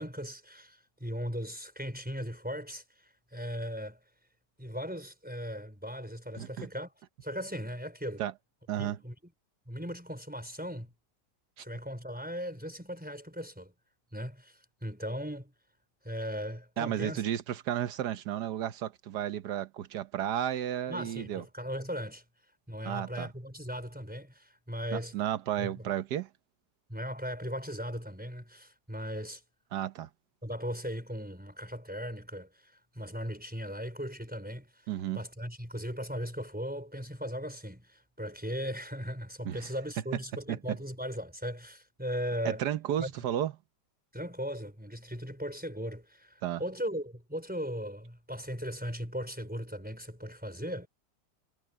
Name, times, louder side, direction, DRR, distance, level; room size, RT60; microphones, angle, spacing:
voice 1, 0.0-4.0 4.6-6.9 7.2-8.2 8.8-9.1 9.7-10.9 11.6-13.7 14.1-15.5 16.0-17.2 20.9-22.2 22.7-25.1 25.6-25.9 26.9-29.4 30.4-34.8 35.1-42.6 43.0-43.1 44.1-50.9, equal, 5° right, 4.5 m, -38 dB
voice 2, 6.4-6.7 8.2-8.3 8.7-9.0 11.6-11.7 16.8-21.4 22.8-23.3 24.9-26.3 29.7-30.1 34.9-35.2 39.4-39.7 40.5-40.8 42.4-43.5 46.4-46.6, right 11 dB, 70° right, 1.5 m, -33 dB
omnidirectional pair, 1.9 m